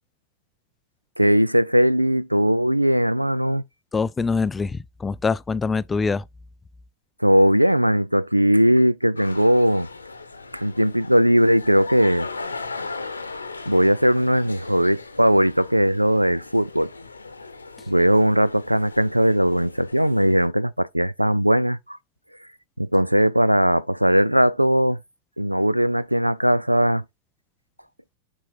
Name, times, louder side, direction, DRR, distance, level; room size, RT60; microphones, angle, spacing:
voice 1, 1.2-3.6 7.2-9.9 10.5-12.3 13.7-16.9 17.9-22.0 22.8-25.0 25.4-27.0, equal, 90° right, 0.3 m, -19 dB
voice 2, 3.9-6.2, left 4 dB, 15° left, 0.3 m, -24 dB
sound 1, 9.2-20.5, left 3 dB, 80° left, 0.9 m, -38 dB
7.1 x 4.7 x 3.8 m
figure-of-eight pair, 90°, 0 cm